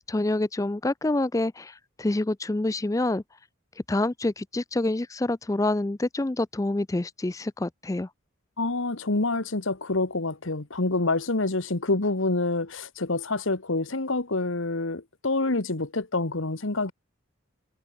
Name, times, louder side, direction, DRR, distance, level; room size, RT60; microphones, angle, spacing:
voice 1, 0.1-3.2 3.9-8.1, left 2 dB, 15° left, 0.4 m, -27 dB
voice 2, 8.6-16.9, left 2 dB, 75° left, 1.6 m, -27 dB
head